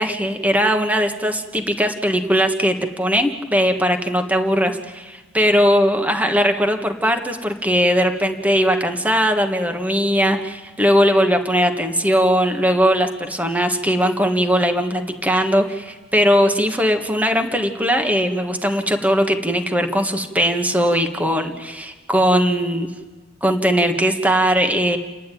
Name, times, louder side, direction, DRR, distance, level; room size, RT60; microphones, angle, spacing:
voice 1, 0.0-22.9 23.4-25.0, equal, 5° right, 5 dB, 1.5 m, -19 dB
30.0 x 11.0 x 9.2 m, 1.3 s
head